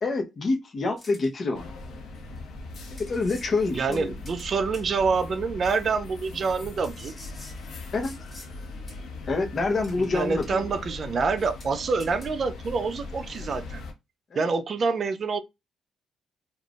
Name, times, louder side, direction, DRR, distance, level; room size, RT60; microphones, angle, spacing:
voice 1, 0.0-1.7 2.9-4.1 7.9-8.1 9.3-10.7 14.3-14.5, left 3 dB, 45° left, 0.8 m, -27 dB
sound 1, 1.0-1.3 2.4-2.5 3.0-3.5 3.9-4.5 4.7-4.9 5.6-5.7 6.8-8.5 8.9-9.0 9.8-10.1 10.4-10.8 11.1-11.2 11.6-11.7 12.0-12.3, left 1 dB, 20° left, 1.1 m, -48 dB
sound 2, 1.5-13.9, left 3 dB, 75° left, 1.0 m, -40 dB
voice 2, 3.7-7.1 10.0-13.8 14.4-15.4, right 4 dB, 50° right, 0.5 m, -27 dB
3.4 x 2.4 x 2.4 m
cardioid pair, 90°, 0 cm